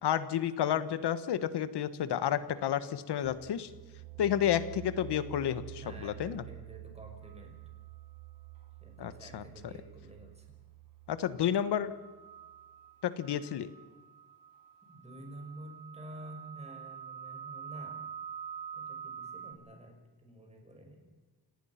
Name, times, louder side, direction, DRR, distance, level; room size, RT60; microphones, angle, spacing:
voice 1, 0.0-3.7 4.2-6.4 9.0-9.4 11.1-11.9 13.0-13.7, left 10 dB, 75° left, 13 dB, 1.6 m, -31 dB
sound 1, 3.2-12.8, right 18 dB, 85° right, 3.2 m, -49 dB
voice 2, 5.8-7.6 8.8-10.5 14.9-18.1 18.7-21.0, right 1 dB, 15° right, 2 dB, 5.7 m, -50 dB
sound 2, 7.2-7.6 11.3-19.5, right 8 dB, 55° right, 4.0 m, -46 dB
29.0 x 18.5 x 5.9 m, 1.2 s
cardioid pair, 135°, 40 cm